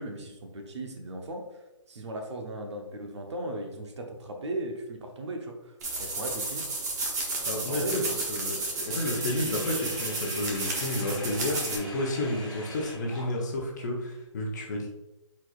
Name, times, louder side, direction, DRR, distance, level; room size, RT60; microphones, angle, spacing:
voice 1, 0.0-1.4 1.9-5.7 6.0-6.7 7.5-8.2, right 1 dB, 60° right, 3 dB, 0.9 m, -36 dB
sound 1, 5.8-11.8, right 3 dB, 30° right, 0.8 m, -32 dB
voice 2, 7.4-8.0 8.3-14.9, left 1 dB, 35° left, 0 dB, 0.8 m, -31 dB
Sink (filling or washing), 8.8-13.7, left 2 dB, 5° left, 0.4 m, -43 dB
4.6 x 4.1 x 2.4 m, 0.94 s
hypercardioid pair, 165°, 17 cm